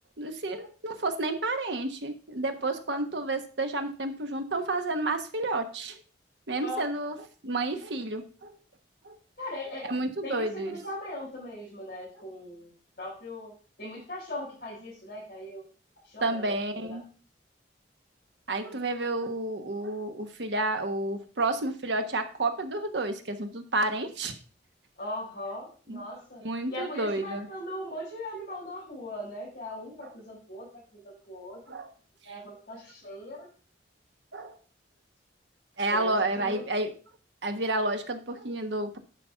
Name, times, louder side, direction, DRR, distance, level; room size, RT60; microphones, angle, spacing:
voice 1, 0.2-6.0 6.5-7.2 7.4-8.5 9.0-9.2 9.8-10.8 16.2-17.0 18.5-24.3 25.9-26.0 26.4-27.5 30.0-30.1 31.7-31.9 34.3-34.5 35.8-36.9 37.4-39.0, right 2 dB, 80° right, 7 dB, 1.2 m, -30 dB
voice 2, 9.4-9.9 10.2-12.7 13.0-13.5 13.8-15.6 16.0-17.0 18.6-18.8 25.0-26.4 26.7-31.8 32.2-33.5 35.9-36.6, left 1 dB, 55° left, -9 dB, 5.8 m, -39 dB
10.5 x 4.2 x 5.6 m, 0.39 s
head